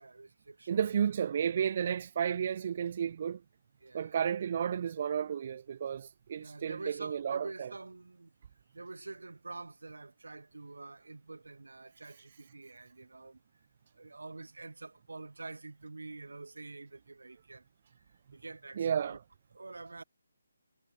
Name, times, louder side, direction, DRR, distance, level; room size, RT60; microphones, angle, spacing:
voice 1, 0.0-0.9 3.8-4.2 6.4-8.3 8.7-13.4 13.9-17.6 18.3-19.2 19.5-20.0, right 3 dB, 80° right, 3.0 m, -47 dB
voice 2, 0.7-3.4 3.9-7.7 18.8-19.2, right 8 dB, 40° right, 1.0 m, -32 dB
figure-of-eight pair, 155°, 0 cm